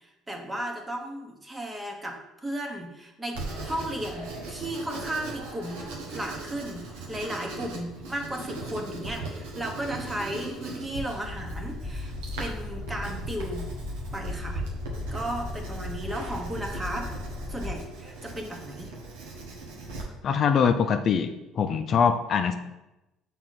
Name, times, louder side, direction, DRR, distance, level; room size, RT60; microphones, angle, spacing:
voice 1, 0.0-13.7 14.1-14.6 15.1-17.2 17.5-19.0, right 1 dB, 15° right, 3 dB, 1.2 m, -35 dB
Writing, 3.3-20.0, right 3 dB, 90° right, 1.4 m, -39 dB
sound 1, 11.2-17.8, left 2 dB, 25° left, 1.0 m, -37 dB
voice 2, 20.2-22.5, left 6 dB, 50° left, 7 dB, 0.5 m, -23 dB
6.0 x 3.8 x 4.2 m, 0.94 s
supercardioid pair, 80°, 0 cm